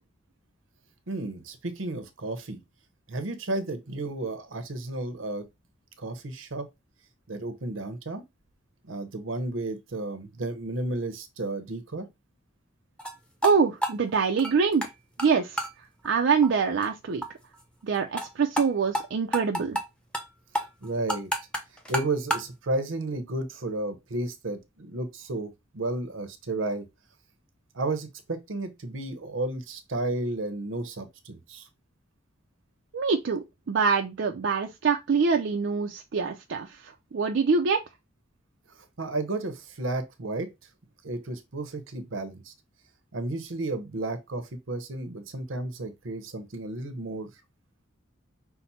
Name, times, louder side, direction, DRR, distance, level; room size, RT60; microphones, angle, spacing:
voice 1, 1.1-2.6 3.1-5.5 6.0-6.7 7.3-8.2 8.9-12.1 20.8-21.3 21.9-26.9 27.7-31.7 38.7-40.5 41.0-42.5 43.1-47.3, right 2 dB, 80° right, 0.8 m, -32 dB
sound 1, 13.0-13.1 13.4-13.5 13.8-14.9 15.2-15.3 15.6-15.7 16.0-16.1 16.4-16.5 16.8-16.9 17.2-17.3 17.5-17.6 17.9-18.3 18.6-18.7 18.9-19.0 19.3-19.8 20.1-20.3 20.5-22.5, equal, 5° left, 0.7 m, -29 dB
voice 2, 13.4-14.9 15.2-15.7 16.0-17.2 17.8-19.8 32.9-37.8, right 5 dB, 60° right, 0.4 m, -25 dB
5.7 x 2.1 x 4.1 m
head